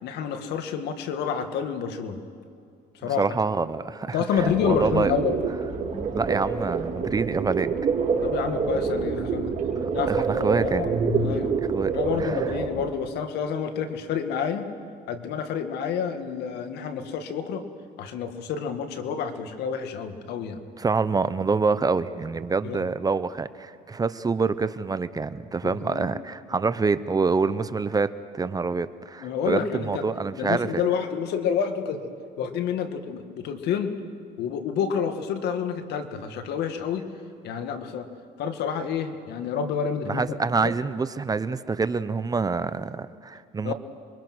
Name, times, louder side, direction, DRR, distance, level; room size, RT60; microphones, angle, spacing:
voice 1, 0.0-2.2 3.0-3.2 4.1-5.4 8.2-9.6 9.9-10.9 11.2-11.5 11.9-14.7 15.1-17.6 18.0-20.6 22.6-22.8 25.6-26.1 29.2-30.0 30.4-32.1 32.4-34.0 34.4-37.1 37.4-38.1 38.4-40.4 40.6-40.7 43.6-43.7, left 7 dB, 80° left, 7 dB, 2.0 m, -29 dB
voice 2, 3.2-5.1 6.1-7.7 10.1-10.9 11.7-11.9 12.2-12.3 20.8-30.7 40.1-43.7, right 4 dB, 20° right, 14 dB, 0.8 m, -26 dB
sound 1, 4.4-12.7, right 5 dB, 50° right, 4.6 m, -27 dB
28.0 x 23.0 x 6.3 m, 2.4 s
cardioid pair, 110°, 17 cm